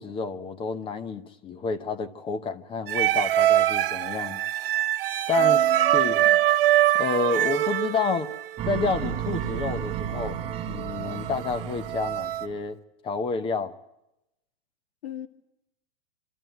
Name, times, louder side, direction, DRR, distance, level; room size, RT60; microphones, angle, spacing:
voice 1, 0.0-4.4 5.3-5.6 5.9-6.2 6.9-8.3 8.6-10.4 10.7-12.8 13.0-13.7, left 4 dB, 20° left, 0.9 m, -29 dB
sound 1, 2.9-12.5, right 13 dB, 70° right, 1.3 m, -24 dB
voice 2, 5.4-6.0 6.2-6.4 15.0-15.3, left 11 dB, 85° left, 2.2 m, -38 dB
sound 2, 8.6-12.6, right 9 dB, 20° right, 1.3 m, -33 dB
25.5 x 13.0 x 9.2 m
supercardioid pair, 150°, 29 cm